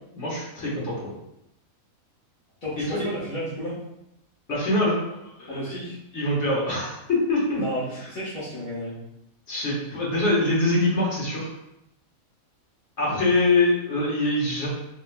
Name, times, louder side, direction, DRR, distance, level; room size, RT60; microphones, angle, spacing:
voice 1, 0.1-1.1 2.9-3.1 4.5-5.0 5.4-5.9 6.1-7.6 9.5-11.5 13.0-14.7, left 2 dB, 55° left, -6 dB, 1.6 m, -24 dB
voice 2, 2.6-3.8 5.5-6.0 7.5-9.0, equal, 80° left, -12 dB, 1.7 m, -32 dB
4.2 x 3.0 x 2.2 m, 0.83 s
omnidirectional pair, 1.5 m